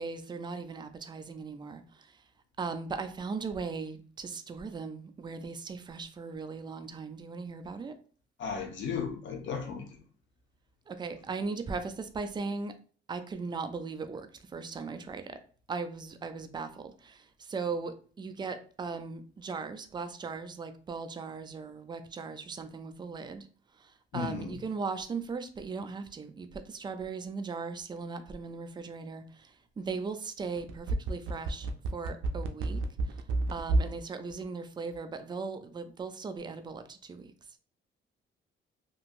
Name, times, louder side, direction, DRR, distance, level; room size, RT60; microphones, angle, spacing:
voice 1, 0.0-2.2 2.6-7.9 10.9-12.7 13.1-15.4 15.7-23.5 23.8-33.2 33.5-37.3, right 4 dB, 20° right, 0.4 m, -38 dB
voice 2, 8.4-9.9 24.1-24.6, left 6 dB, 70° left, 0.7 m, -35 dB
sound 1, 30.6-34.0 34.3-34.4, right 2 dB, 90° right, 0.4 m, -29 dB
2.8 x 2.6 x 2.5 m
cardioid pair, 90°, 20 cm